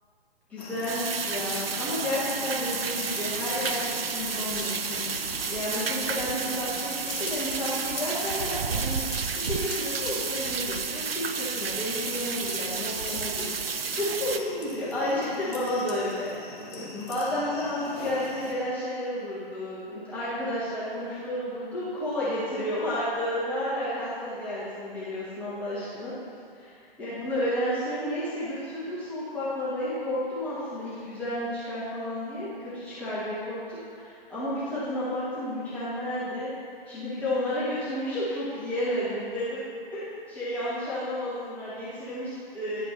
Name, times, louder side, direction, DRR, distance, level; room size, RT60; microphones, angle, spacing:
voice 1, 0.5-9.0 9.3-16.3 16.7-26.1 26.5-26.7 27.0-36.5 36.9-39.6 39.9-42.9, left 1 dB, 5° left, -12 dB, 0.9 m, -31 dB
sound 1, 0.6-18.5, left 2 dB, 40° left, 1.4 m, -40 dB
sound 2, 0.9-14.4, right 6 dB, 70° right, 0.5 m, -31 dB
9.9 x 5.2 x 3.3 m, 2.4 s
figure-of-eight pair, 135°, 30 cm